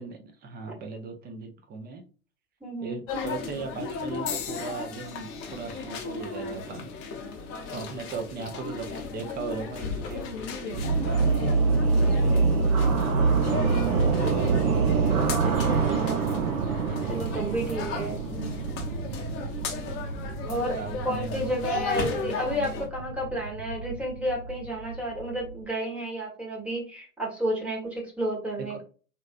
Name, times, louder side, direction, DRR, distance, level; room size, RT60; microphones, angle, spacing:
voice 1, 0.0-2.0 2.8-6.9 7.6-11.3 17.6-17.7 20.8-21.5 22.0-22.1, right 4 dB, 20° right, 4 dB, 0.7 m, -39 dB
voice 2, 2.6-3.0 15.4-16.3 17.1-18.2 20.5-20.8 21.0-28.8, right 1 dB, 5° right, -2 dB, 1.2 m, -31 dB
sound 1, 3.1-22.9, left 4 dB, 30° left, 0.9 m, -36 dB
sound 2, 4.3-8.4 9.1-9.5 10.5-10.7, left 8 dB, 70° left, 1.0 m, -43 dB
sound 3, 10.7-25.6, right 4 dB, 70° right, 0.8 m, -26 dB
3.1 x 2.6 x 2.5 m, 0.38 s
hypercardioid pair, 100°, 44 cm